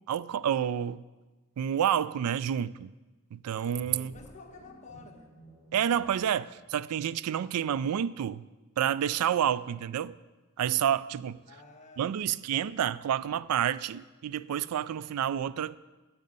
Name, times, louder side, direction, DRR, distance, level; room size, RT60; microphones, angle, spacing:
voice 1, 0.1-1.0 1.6-2.9 3.3-4.1 5.7-8.4 8.8-10.2 10.6-11.4 12.0-15.8, right 9 dB, 85° right, 18 dB, 0.3 m, -29 dB
sound 1, 3.7-6.1, equal, 15° left, 3.8 m, -52 dB
voice 2, 3.9-5.3 11.5-12.5, left 3 dB, 35° left, 1 dB, 1.2 m, -51 dB
9.4 x 7.7 x 5.3 m, 1.2 s
head